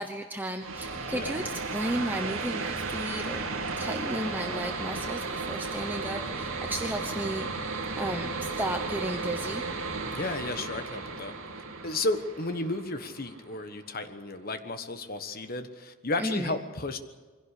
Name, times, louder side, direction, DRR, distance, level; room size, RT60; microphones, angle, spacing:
voice 1, 0.0-3.5 3.8-7.5 8.0-9.6 16.2-16.6, right 1 dB, 10° right, 4 dB, 0.9 m, -34 dB
sound 1, 0.6-14.0, right 3 dB, 70° right, 2.8 m, -34 dB
voice 2, 10.1-11.4 11.8-17.0, left 2 dB, 40° left, 8 dB, 1.3 m, -33 dB
22.5 x 16.5 x 8.4 m, 1.4 s
head